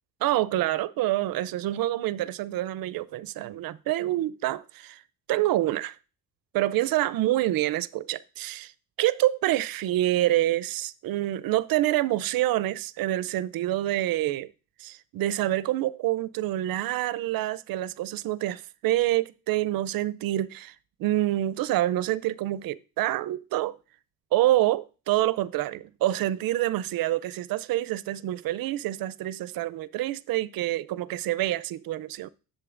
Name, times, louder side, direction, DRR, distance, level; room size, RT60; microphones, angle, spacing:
voice 1, 0.2-5.0 5.3-6.0 6.5-8.7 9.0-14.5 14.8-20.7 21.0-23.8 24.3-32.3, right 14 dB, 75° right, 0.5 m, -27 dB
11.0 x 7.5 x 2.5 m
cardioid pair, 170°, 35 cm